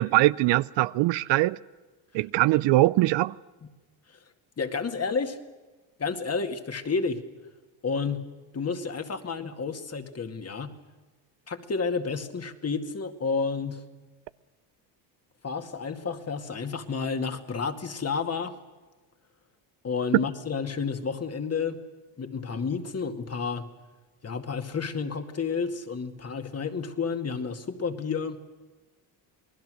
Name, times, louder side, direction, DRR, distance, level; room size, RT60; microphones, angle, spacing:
voice 1, 0.0-1.6 2.1-3.4, right 18 dB, 65° right, 0.6 m, -22 dB
voice 2, 4.6-5.4 6.0-7.2 7.8-10.7 11.5-13.8 15.4-18.6 19.8-21.8 22.2-23.7 24.2-28.4, left 5 dB, 30° left, 2.3 m, -30 dB
28.5 x 20.0 x 6.5 m
supercardioid pair, 85°, 48 cm